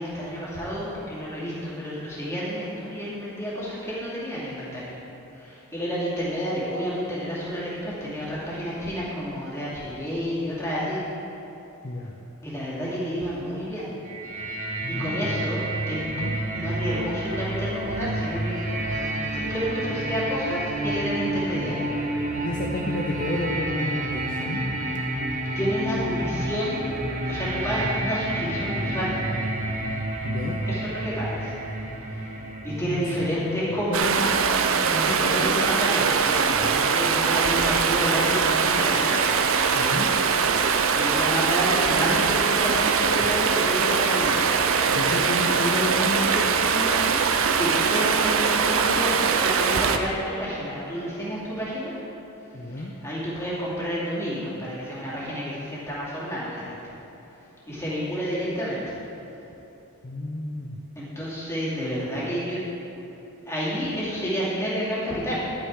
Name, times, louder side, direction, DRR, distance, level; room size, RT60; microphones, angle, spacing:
voice 1, 0.0-5.0 5.3-11.1 12.4-13.9 14.9-16.3 16.5-18.6 19.3-21.9 25.5-26.9 27.3-29.2 30.7-31.5 31.8-32.3 32.6-39.1 40.6-44.5 47.6-51.9 52.6-56.8 57.7-59.0 61.0-62.6 63.5-65.4, equal, 15° left, -8 dB, 2.5 m, -30 dB
sound 1, 14.1-33.8, right 1 dB, 35° right, 1.0 m, -30 dB
voice 2, 14.8-15.4 16.1-16.3 22.4-24.6 30.2-30.6 32.9-34.1 35.1-35.9 36.5-36.7 39.7-40.1 44.9-47.2 52.5-52.9 60.0-60.8, left 2 dB, 40° left, -2 dB, 0.6 m, -31 dB
Stream, 33.9-50.0, right 5 dB, 60° right, 0.5 m, -22 dB
11.5 x 8.8 x 3.7 m, 3.0 s
head